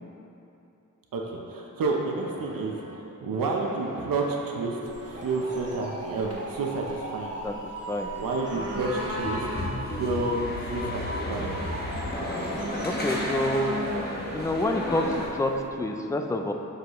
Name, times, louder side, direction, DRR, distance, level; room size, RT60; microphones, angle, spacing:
voice 1, 1.1-2.8 3.2-4.8 5.0-7.3 8.2-10.4 10.7-11.5, right 3 dB, 90° right, 0 dB, 0.8 m, -30 dB
sound 1, 2.2-2.9 3.3-15.2, equal, 25° right, 1.4 m, -40 dB
sound 2, 4.9-15.7, right 1 dB, 45° right, 1.0 m, -39 dB
sound 3, 8.8-15.3, left 1 dB, 30° left, 1.1 m, -33 dB
voice 2, 12.8-13.8 14.3-16.5, left 1 dB, 10° left, 4 dB, 0.4 m, -27 dB
7.8 x 6.3 x 3.1 m, 2.8 s
wide cardioid pair, 105°, 33 cm